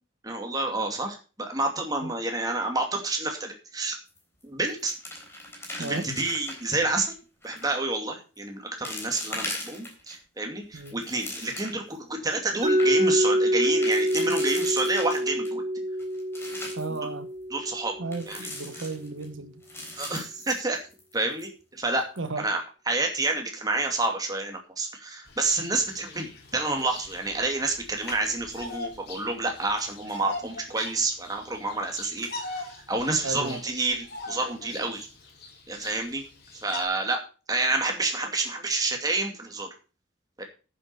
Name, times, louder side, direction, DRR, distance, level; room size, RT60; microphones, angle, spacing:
voice 1, 0.2-3.9 4.4-4.9 5.8-7.1 7.4-15.6 17.0-17.1 17.5-17.9 18.3-18.5 20.0-20.8 21.1-22.0 22.4-35.1 35.7-36.2 36.6-37.2 37.5-39.7 40.4-40.5, right 2 dB, 20° right, 2.4 m, -29 dB
sound 1, 4.1-4.4 4.7-6.8 7.4-7.8 8.3-8.4 8.8-10.2 10.6-11.9 12.3-12.4 12.6-12.9 13.6-15.5 16.0-17.0 18.1-19.3 19.6-21.1 21.4-21.5 22.0-22.3, left 1 dB, 15° left, 3.7 m, -39 dB
Mallet percussion, 12.6-18.5, equal, 35° right, 1.6 m, -26 dB
voice 2, 16.7-17.3 18.0-19.5 22.2-22.5 33.2-33.6, right 3 dB, 80° right, 1.0 m, -34 dB
Bird vocalization bird call bird song, 25.3-36.8, left 3 dB, 50° left, 3.4 m, -42 dB
9.9 x 7.6 x 6.7 m
head